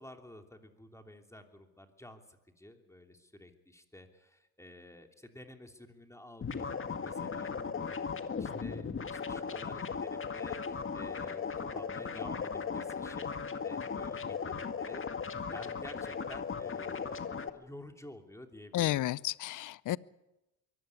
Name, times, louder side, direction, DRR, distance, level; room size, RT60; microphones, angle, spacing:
voice 1, 0.0-2.2 2.6-15.0 15.5-19.0, left 1 dB, 5° left, 4 dB, 3.0 m, -51 dB
sound 1, 6.4-17.5, left 6 dB, 30° left, 1.9 m, -37 dB
voice 2, 18.7-20.0, left 14 dB, 45° left, 22 dB, 0.7 m, -31 dB
23.0 x 15.5 x 9.8 m, 0.97 s
supercardioid pair, 80°, 44 cm